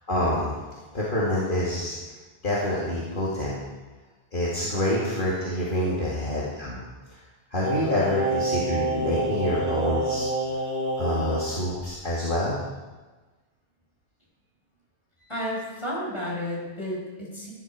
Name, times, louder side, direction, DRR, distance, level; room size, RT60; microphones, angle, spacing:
voice 1, 0.1-0.5 0.9-2.0 2.4-3.6 4.3-6.8 7.5-10.3 11.0-12.6 15.2-15.3, left 1 dB, 55° left, -6 dB, 2.4 m, -27 dB
Singing, 7.6-11.5 11.8-11.9, right 1 dB, 40° right, 3.3 m, -28 dB
voice 2, 15.3-17.5, equal, 25° left, -4 dB, 5.2 m, -32 dB
16.5 x 11.0 x 4.9 m, 1.2 s
omnidirectional pair, 1.1 m